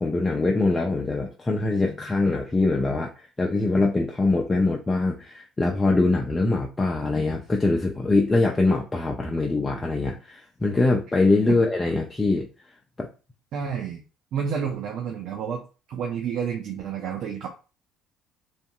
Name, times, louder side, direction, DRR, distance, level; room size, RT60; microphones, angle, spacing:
voice 1, 0.0-12.5 13.0-13.1, left 2 dB, 20° left, 0 dB, 0.4 m, -23 dB
voice 2, 13.5-14.0 14.3-17.5, right 7 dB, 60° right, 3 dB, 0.4 m, -30 dB
2.6 x 2.5 x 2.3 m, 0.34 s
hypercardioid pair, 60°, 0 cm